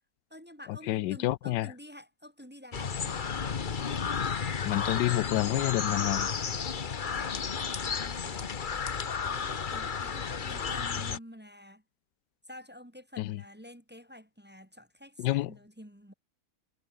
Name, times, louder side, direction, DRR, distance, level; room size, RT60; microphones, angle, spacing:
voice 1, 0.3-3.3 8.0-8.4 9.1-11.8 12.4-16.1, equal, 5° right, 1.5 m, -49 dB
voice 2, 0.9-1.7 4.6-6.3 13.2-13.4 15.2-15.5, left 16 dB, 85° left, 1.2 m, -29 dB
sound 1, 2.7-11.2, left 6 dB, 35° left, 0.9 m, -32 dB
omnidirectional pair, 1.8 m